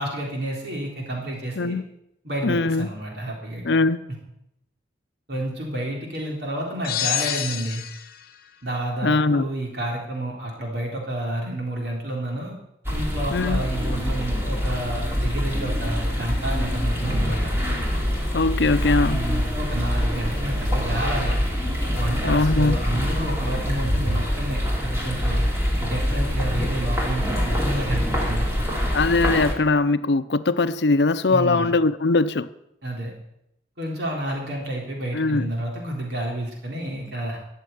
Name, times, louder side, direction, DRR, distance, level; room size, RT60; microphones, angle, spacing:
voice 1, 0.0-1.8 2.2-3.7 5.3-7.8 8.6-12.5 12.9-17.5 19.1-21.4 21.9-25.4 25.8-28.4 31.3-31.7 32.8-33.1 33.8-37.4, right 1 dB, 65° right, 3.5 m, -30 dB
voice 2, 2.4-2.9 3.6-4.0 9.0-9.4 13.3-13.7 18.3-19.2 22.2-22.8 28.9-32.5 35.1-35.5, left 3 dB, 70° left, 0.6 m, -21 dB
sound 1, 6.8-8.2, left 11 dB, 50° left, 1.1 m, -27 dB
sound 2, 12.8-29.5, equal, 15° right, 3.0 m, -25 dB
13.0 x 7.5 x 9.3 m
head